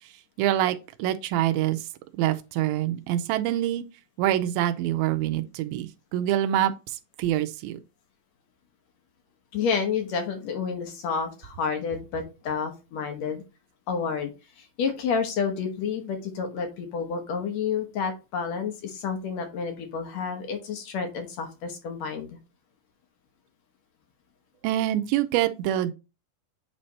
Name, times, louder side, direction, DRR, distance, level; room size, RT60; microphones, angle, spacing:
voice 1, 0.4-1.8 2.2-3.8 4.2-7.8 24.6-25.9, right 13 dB, 90° right, 2.5 m, -25 dB
voice 2, 9.5-13.4 13.9-14.3 14.6-22.3, left 6 dB, 65° left, 1.9 m, -30 dB
8.6 x 3.3 x 4.1 m
omnidirectional pair, 4.2 m